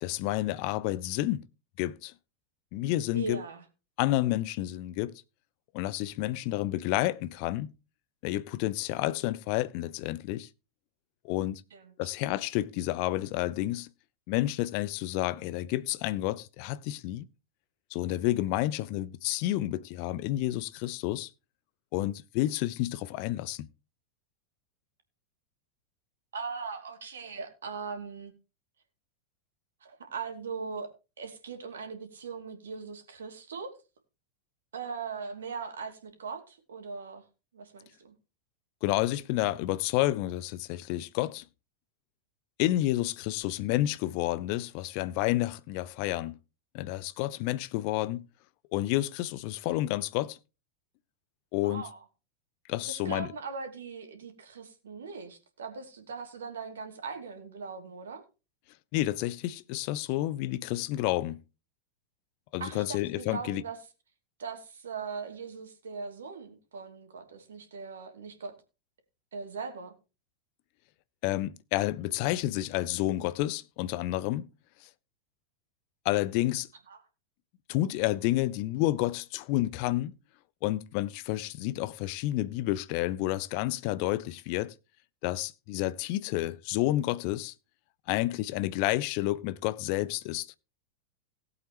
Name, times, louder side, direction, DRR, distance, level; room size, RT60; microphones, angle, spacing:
voice 1, 0.0-1.5 1.8-2.1 2.7-3.4 4.0-5.2 5.7-7.7 8.2-10.5 11.2-11.6 12.0-13.9 14.3-17.3 17.9-21.3 21.9-23.7 38.8-41.4 42.6-46.4 46.7-48.3 48.7-50.4 51.5-51.8 52.7-53.3 58.9-61.4 62.5-63.6 71.2-74.5 74.8-74.9 76.0-76.7 77.7-80.1 80.6-84.7 85.2-87.5 88.1-90.5, left 16 dB, 45° left, 0.7 m, -30 dB
voice 2, 3.1-3.6 11.7-12.1 26.3-28.3 29.8-30.9 31.2-33.8 34.7-37.2 37.5-38.1 51.6-52.0 52.9-58.2 62.6-63.8 64.4-68.5 69.3-69.9 76.9-77.0, right 5 dB, 65° right, 2.6 m, -40 dB
18.0 x 8.1 x 3.0 m
figure-of-eight pair, 90°, 0 cm